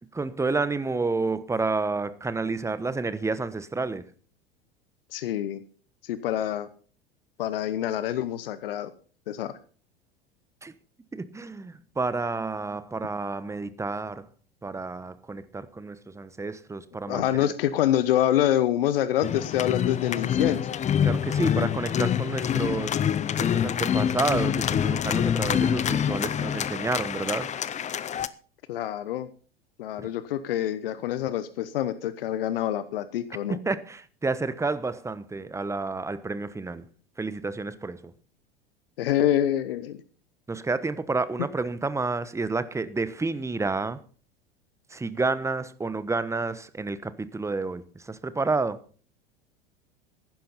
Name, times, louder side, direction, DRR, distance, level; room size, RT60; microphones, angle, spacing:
voice 1, 0.1-4.1 10.6-10.7 11.1-14.3 14.6-17.5 21.0-23.0 23.4-27.5 30.0-30.1 33.5-36.9 37.2-38.1 40.5-44.0 44.9-48.8, right 3 dB, 10° right, 1.1 m, -30 dB
voice 2, 5.1-5.6 6.0-6.7 7.4-8.9 9.3-9.5 17.0-20.7 28.7-29.3 29.8-33.6 39.0-40.0, left 11 dB, 65° left, 1.0 m, -26 dB
sound 1, 19.2-28.3, left 9 dB, 25° left, 0.8 m, -26 dB
15.5 x 11.5 x 4.2 m
figure-of-eight pair, 85°, 30 cm